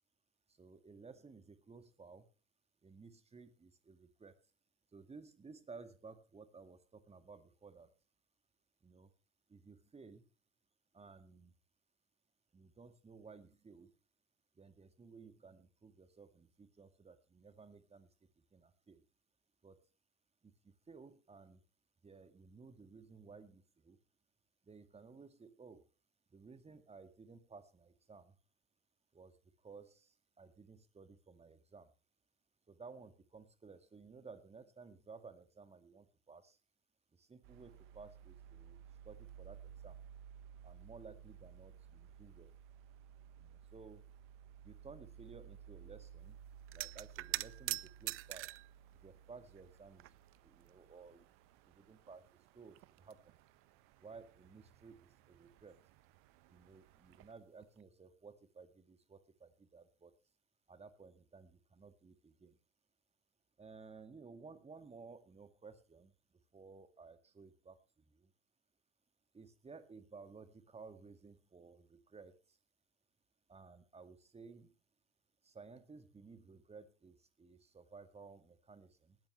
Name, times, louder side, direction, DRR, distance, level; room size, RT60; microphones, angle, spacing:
voice 1, 0.5-2.3 2.8-4.5 4.9-7.9 8.8-9.1 9.5-10.3 10.9-11.5 12.5-13.9 14.5-18.1 18.4-19.1 19.6-19.9 20.4-21.6 22.0-24.0 24.6-25.9 26.3-28.4 29.1-31.9 32.7-36.6 37.1-40.0 40.6-42.6 43.4-44.1 44.6-46.4 46.7-48.5 49.0-50.1 50.4-51.3 51.6-53.4 54.0-55.9 56.5-60.2 60.7-62.6 63.6-66.1 66.5-68.3 69.3-72.6 73.5-74.7 75.4-79.2, right 4 dB, 15° right, 10 dB, 2.1 m, -56 dB
sound 1, 37.4-57.3, right 8 dB, 55° right, 1.6 m, -57 dB
sound 2, 46.7-48.7 49.6-50.4 50.7-50.8 52.1-52.2 52.5-53.5 57.1-57.3 57.6-57.8, right 18 dB, 35° right, 0.6 m, -42 dB
19.0 x 13.5 x 3.3 m, 0.32 s
hypercardioid pair, 80°, 37 cm